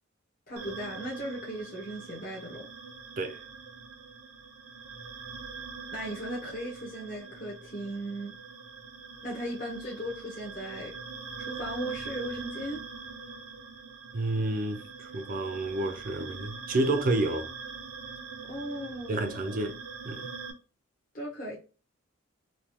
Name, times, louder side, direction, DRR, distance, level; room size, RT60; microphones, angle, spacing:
voice 1, 0.5-2.7 5.9-8.3 9.2-10.9 11.4-12.8 18.5-19.6 21.1-21.6, right 1 dB, 40° left, 0.8 m, -37 dB
sound 1, 0.6-20.5, right 5 dB, 80° right, 0.7 m, -43 dB
voice 2, 14.1-17.5 19.1-19.8 20.0-20.3, right 2 dB, 40° right, 0.4 m, -30 dB
3.2 x 2.3 x 2.7 m
head